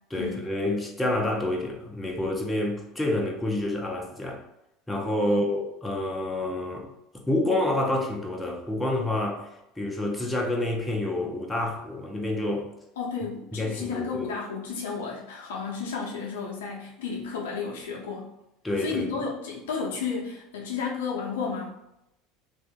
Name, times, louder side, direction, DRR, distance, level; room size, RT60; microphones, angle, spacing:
voice 1, 0.1-4.4 4.9-6.9 7.3-9.5 9.8-12.7 13.5-14.3 18.6-19.1, left 1 dB, 10° left, 0 dB, 0.8 m, -28 dB
voice 2, 13.0-18.3 18.8-21.8, left 5 dB, 85° left, 0 dB, 0.7 m, -32 dB
2.6 x 2.6 x 3.5 m, 0.83 s
hypercardioid pair, 90°, 0 cm